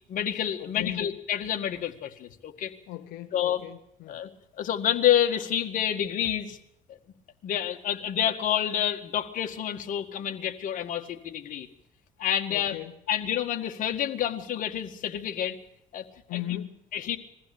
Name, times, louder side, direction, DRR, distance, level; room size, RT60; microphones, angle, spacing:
voice 1, 0.1-2.7 3.3-3.6 4.1-4.3 4.6-6.6 7.4-11.7 12.2-12.8 13.1-15.6 15.9-16.4 16.9-17.2, left 10 dB, 60° left, 5 dB, 1.9 m, -28 dB
voice 2, 0.6-1.1 2.9-4.2 12.5-13.0 16.3-16.8, left 14 dB, 85° left, 7 dB, 1.0 m, -37 dB
22.0 x 15.0 x 8.7 m, 0.79 s
cardioid pair, 120°, 15 cm